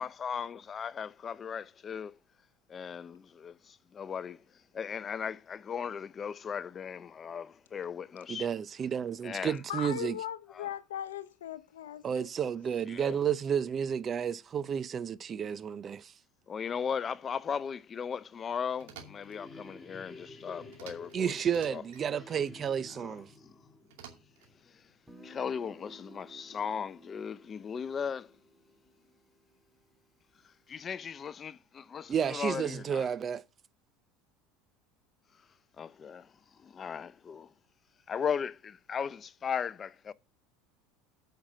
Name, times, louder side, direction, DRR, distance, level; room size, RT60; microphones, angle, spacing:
voice 1, 0.0-2.2 2.7-8.5 9.2-9.6 10.5-10.7 12.9-13.2 16.5-21.4 21.7-21.8 22.9-23.5 24.6-24.9 25.2-28.3 30.4-33.1 35.8-37.5 38.1-40.1, left 7 dB, 35° left, 0.5 m, -37 dB
voice 2, 8.3-10.2 12.0-16.1 21.1-23.3 32.1-33.4, right 8 dB, 35° right, 0.6 m, -31 dB
voice 3, 9.7-12.3, left 10 dB, 90° left, 0.8 m, -39 dB
sound 1, 18.6-25.1, left 2 dB, 20° left, 2.5 m, -52 dB
sound 2, 18.8-19.4 20.7-21.2 21.4-22.1 23.9-24.5, right 9 dB, 80° right, 2.5 m, -50 dB
Guitar, 25.1-30.6, right 1 dB, 5° right, 1.9 m, -57 dB
8.8 x 5.7 x 5.7 m
hypercardioid pair, 85°, 0 cm